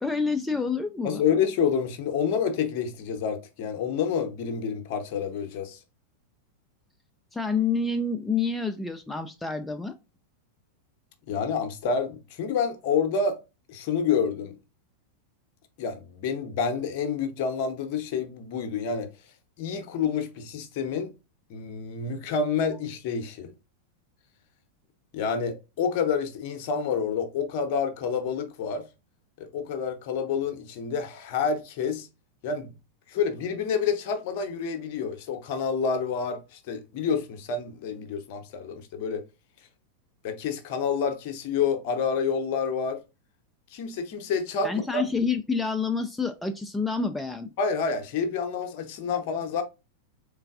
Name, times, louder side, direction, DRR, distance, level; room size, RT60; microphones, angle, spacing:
voice 1, 0.0-1.2 7.3-9.9 44.6-47.5, left 4 dB, 5° left, 0.3 m, -28 dB
voice 2, 1.0-5.8 11.3-13.4 13.7-14.6 15.8-19.1 19.6-21.1 21.5-23.5 25.1-28.9 29.4-32.1 32.4-32.7 33.1-39.2 40.2-43.0 43.7-45.0 47.6-49.6, left 6 dB, 45° left, 0.7 m, -28 dB
3.8 x 3.3 x 2.4 m
figure-of-eight pair, 90°, 0 cm